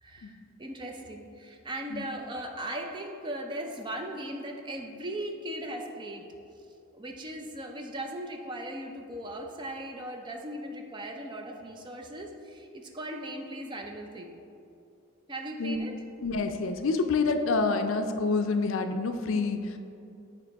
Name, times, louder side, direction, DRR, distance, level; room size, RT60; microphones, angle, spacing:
voice 1, 0.0-6.3 6.5-6.7 6.9-14.4 15.3-16.1, right 1 dB, 20° right, 3 dB, 0.4 m, -38 dB
voice 2, 16.2-19.6, left 4 dB, 70° left, 6 dB, 0.4 m, -27 dB
8.4 x 2.9 x 4.6 m, 2.6 s
head